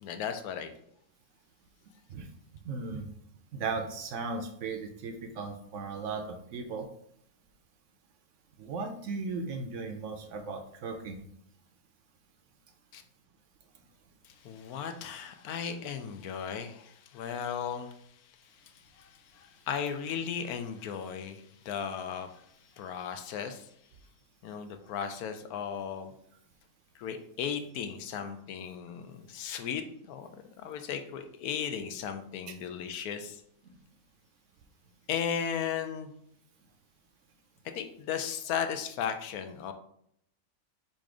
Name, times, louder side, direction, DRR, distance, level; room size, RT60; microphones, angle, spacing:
voice 1, 0.0-0.7 12.9-13.0 14.2-18.0 18.6-22.5 22.8-23.7 24.4-26.1 26.9-30.3 30.6-33.4 35.1-36.1 37.6-39.7, left 7 dB, 85° left, 7 dB, 1.1 m, -36 dB
voice 2, 2.6-3.0 3.5-6.9 8.6-11.2 32.5-32.6, right 4 dB, 65° right, 5 dB, 0.8 m, -36 dB
4.2 x 2.6 x 4.8 m, 0.71 s
omnidirectional pair, 1.5 m